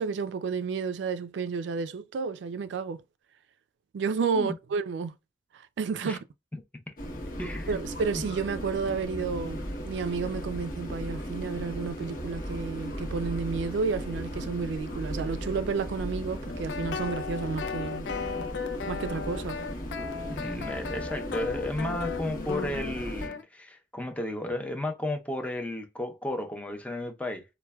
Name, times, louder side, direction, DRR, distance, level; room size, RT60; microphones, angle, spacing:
voice 1, 0.0-3.0 3.9-5.1 5.8-6.2 7.7-18.1 18.9-19.6, right 5 dB, 85° right, 0.3 m, -31 dB
sound 1, 7.0-23.3, equal, 50° left, 0.9 m, -36 dB
voice 2, 7.4-7.8 20.3-27.4, left 1 dB, 10° left, 0.5 m, -33 dB
sound 2, 16.5-23.4, left 5 dB, 85° left, 0.4 m, -36 dB
4.4 x 2.2 x 2.2 m
head